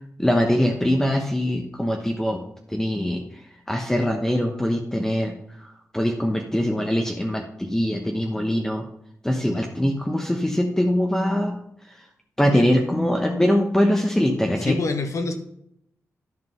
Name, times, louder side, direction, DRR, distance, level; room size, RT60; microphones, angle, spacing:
voice 1, 0.2-2.4 2.7-3.2 3.7-5.3 5.6-8.8 9.2-11.6 12.4-14.8, equal, 10° left, 1 dB, 1.1 m, -22 dB
voice 2, 14.6-15.3, left 3 dB, 65° left, 6 dB, 1.4 m, -26 dB
11.0 x 5.3 x 5.6 m, 0.73 s
wide cardioid pair, 90°, 6 cm